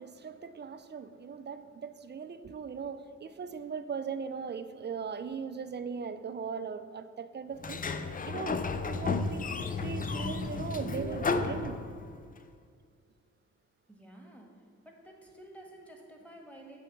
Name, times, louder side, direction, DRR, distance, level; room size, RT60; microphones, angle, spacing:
voice 1, 0.0-9.5 9.8-11.8, right 6 dB, 35° right, 10 dB, 0.4 m, -39 dB
Sliding door, 7.6-12.3, left 4 dB, 25° left, 0.4 m, -33 dB
sound 1, 10.8-11.8, right 4 dB, 50° right, 0.8 m, -42 dB
voice 2, 13.9-14.5 14.8-16.8, right 1 dB, 5° left, 0 dB, 1.4 m, -51 dB
7.0 x 3.4 x 5.9 m, 2.1 s
cardioid pair, 60°, 33 cm